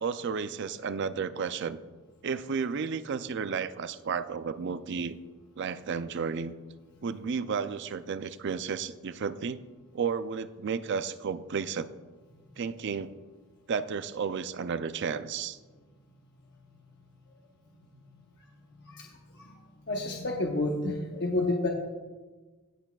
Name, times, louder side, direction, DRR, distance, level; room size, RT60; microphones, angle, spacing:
voice 1, 0.0-1.8 2.2-5.2 5.6-6.5 7.0-9.6 9.9-11.9 12.6-13.1 13.7-15.6, right 6 dB, 50° right, 13 dB, 0.4 m, -32 dB
voice 2, 18.8-21.7, left 2 dB, 50° left, 0 dB, 0.9 m, -31 dB
17.0 x 8.1 x 2.3 m, 1.3 s
head